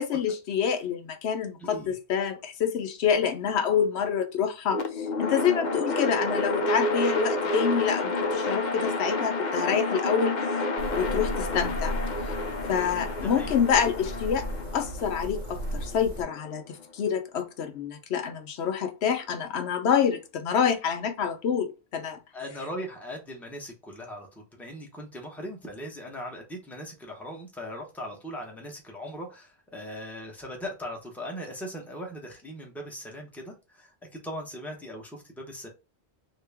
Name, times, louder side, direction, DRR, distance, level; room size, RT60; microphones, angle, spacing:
voice 1, 0.0-10.4 10.9-12.0 12.7-14.4 14.7-22.2, left 7 dB, 75° left, 0.9 m, -27 dB
voice 2, 1.6-1.9 13.2-13.5 22.3-35.7, equal, ahead, 0.9 m, -39 dB
sound 1, 4.7-16.8, left 2 dB, 50° left, 0.6 m, -30 dB
sound 2, 10.8-16.2, right 1 dB, 50° right, 0.9 m, -35 dB
3.0 x 2.8 x 3.4 m
omnidirectional pair, 1.1 m